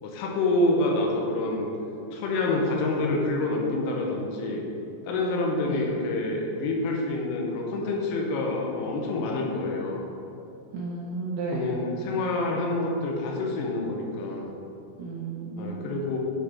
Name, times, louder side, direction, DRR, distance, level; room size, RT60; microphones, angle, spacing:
voice 1, 0.0-1.7 2.1-4.6 5.1-10.1 11.5-14.5 15.6-16.2, left 2 dB, 80° left, 0 dB, 3.3 m, -27 dB
voice 2, 10.7-11.7 15.0-16.0, right 4 dB, 85° right, -3 dB, 2.5 m, -33 dB
9.8 x 5.6 x 4.3 m, 2.9 s
omnidirectional pair, 5.9 m